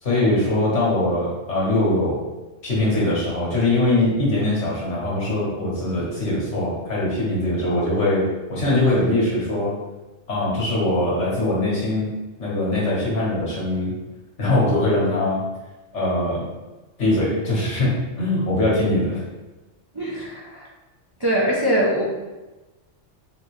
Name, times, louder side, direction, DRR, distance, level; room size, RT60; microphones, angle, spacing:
voice 1, 0.0-2.2 2.6-9.7 10.3-12.1 12.4-13.9 14.4-15.4 15.9-16.4 17.0-19.2, left 1 dB, 75° left, -5 dB, 1.6 m, -22 dB
voice 2, 19.9-20.7 21.2-22.0, right 1 dB, 35° right, -5 dB, 0.4 m, -22 dB
4.0 x 3.0 x 3.1 m, 1.1 s
omnidirectional pair, 1.2 m